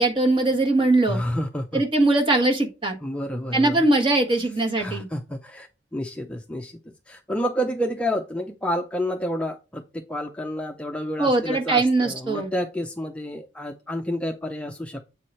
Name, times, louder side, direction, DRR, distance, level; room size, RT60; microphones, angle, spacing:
voice 1, 0.0-1.2 1.7-3.0 3.5-5.1 11.2-12.5, right 2 dB, 30° right, 1.5 m, -21 dB
voice 2, 1.0-1.8 3.0-3.9 4.8-6.7 7.1-15.0, equal, 5° left, 0.5 m, -29 dB
7.6 x 4.8 x 4.2 m
head